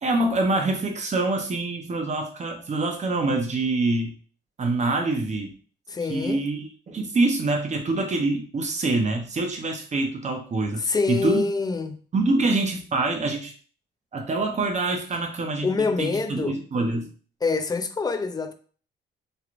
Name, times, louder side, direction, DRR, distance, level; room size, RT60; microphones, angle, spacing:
voice 1, 0.0-4.1 4.6-5.6 6.1-6.6 6.9-11.5 12.1-13.5 14.1-17.1, right 2 dB, 35° right, 0.8 m, -25 dB
voice 2, 5.9-6.4 10.8-12.0 15.6-16.6 17.4-18.5, left 4 dB, 20° left, 0.4 m, -25 dB
3.2 x 2.9 x 2.5 m
cardioid pair, 90°, 20 cm